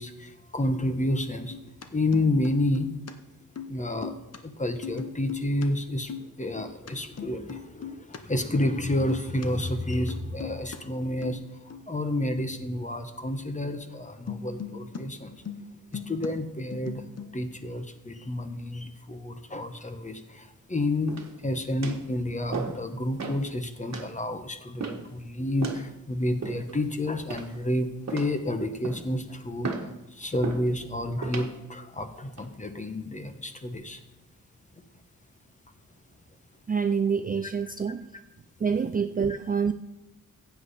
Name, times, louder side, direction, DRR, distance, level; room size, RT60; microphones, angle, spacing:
voice 1, 0.0-1.6 1.9-2.9 3.7-4.2 4.4-15.4 15.9-17.0 17.3-34.0 39.3-39.4, left 1 dB, 20° left, 8 dB, 1.0 m, -30 dB
sound 1, 1.4-1.9 2.1-3.1 3.4-3.7 4.0-4.4 4.8-5.7 5.9-6.9 7.2-8.2 8.5-8.8 9.1-9.5 9.9-10.8 11.2-11.4 11.7-11.9 14.3-15.0 15.3-16.3 16.6-17.4, left 6 dB, 50° left, 0.9 m, -39 dB
sound 2, 21.1-21.4 21.8-22.1 22.5-22.8 23.2-23.4 23.9-24.1 24.8-25.1 25.6-25.8 26.4-26.8 27.3-27.7 28.1-28.4 28.8-29.1 29.6-29.9 30.4-30.7 31.2-31.5 32.1-32.4, right 4 dB, 50° right, 1.5 m, -35 dB
voice 2, 36.7-38.1 38.6-39.7, right 6 dB, 25° right, 9 dB, 0.3 m, -26 dB
15.0 x 8.2 x 4.2 m, 0.98 s
wide cardioid pair, 140°, 34 cm